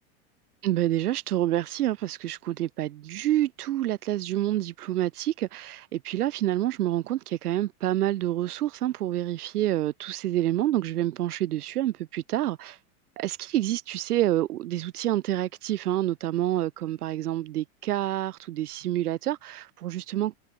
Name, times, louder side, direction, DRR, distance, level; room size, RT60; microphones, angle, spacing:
voice 1, 0.6-12.8 13.2-20.4, right 14 dB, 85° right, 1.7 m, -28 dB
hypercardioid pair, 120°, 44 cm